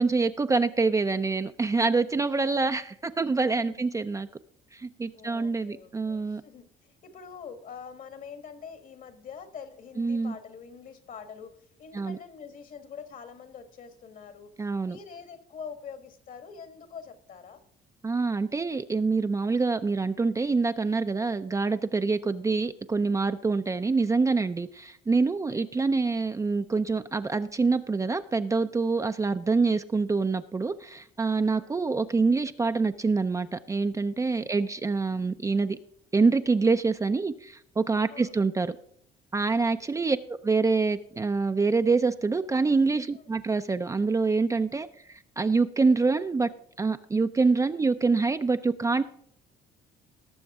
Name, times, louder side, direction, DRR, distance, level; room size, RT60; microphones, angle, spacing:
voice 1, 0.0-4.3 4.7-6.4 10.0-10.3 11.9-12.2 14.6-15.0 18.0-35.8 36.1-38.7 39.3-46.5 46.8-49.0, right 4 dB, 20° right, 9 dB, 0.5 m, -26 dB
voice 2, 3.5-3.9 5.1-14.5 14.8-17.6 22.0-22.1 25.4-25.7 31.5-31.7 34.3-34.8 38.1-38.3 39.5-40.2 43.1-43.2, left 6 dB, 55° left, 10 dB, 1.6 m, -45 dB
18.5 x 6.9 x 3.6 m, 0.66 s
cardioid pair, 110°, 17 cm